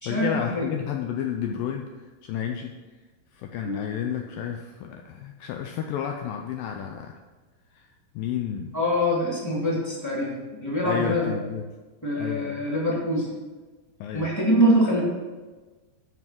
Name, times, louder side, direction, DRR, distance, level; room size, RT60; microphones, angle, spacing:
voice 1, 0.1-2.7 3.3-7.2 7.7-7.9 8.2-8.7 10.8-11.7 12.1-12.7 14.0-14.3, left 8 dB, 80° left, 3 dB, 2.0 m, -31 dB
voice 2, 8.7-11.3 12.0-13.3 14.1-15.0, equal, 5° left, -6 dB, 1.7 m, -24 dB
9.4 x 5.7 x 6.1 m, 1.3 s
omnidirectional pair, 4.6 m